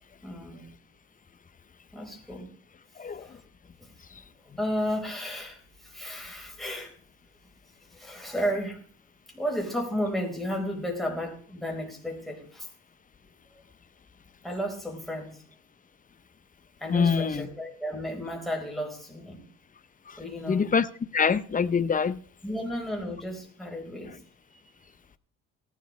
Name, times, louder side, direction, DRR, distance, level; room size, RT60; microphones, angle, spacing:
voice 1, 0.2-0.6 1.9-2.5 3.2-3.4 4.6-5.6 5.8-6.9 7.9-8.8 9.3-12.7 14.4-15.4 16.8-19.4 20.2-20.7 22.4-24.2, equal, ahead, 4.4 m, -33 dB
voice 2, 16.9-17.5 20.5-20.9 21.1-22.2, left 6 dB, 25° left, 0.7 m, -24 dB
18.0 x 12.0 x 3.2 m
cardioid pair, 90°, 30 cm